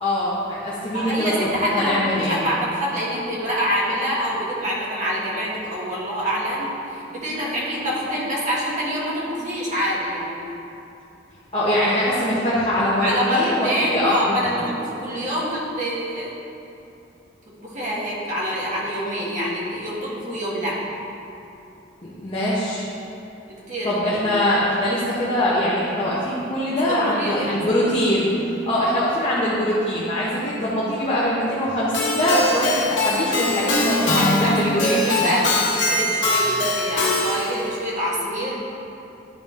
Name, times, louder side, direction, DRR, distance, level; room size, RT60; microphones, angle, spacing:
voice 1, 0.0-1.3 1.7-2.4 11.5-14.6 22.0-22.9 23.8-35.3, equal, 30° left, -8 dB, 1.0 m, -22 dB
voice 2, 0.9-10.5 13.0-16.3 17.6-20.8 23.7-24.3 26.9-27.9 28.7-28.9 33.9-38.5, equal, 40° right, -5 dB, 1.4 m, -26 dB
Keyboard (musical), 31.9-37.6, left 2 dB, 75° left, 1.5 m, -22 dB
10.5 x 3.9 x 3.6 m, 2.8 s
head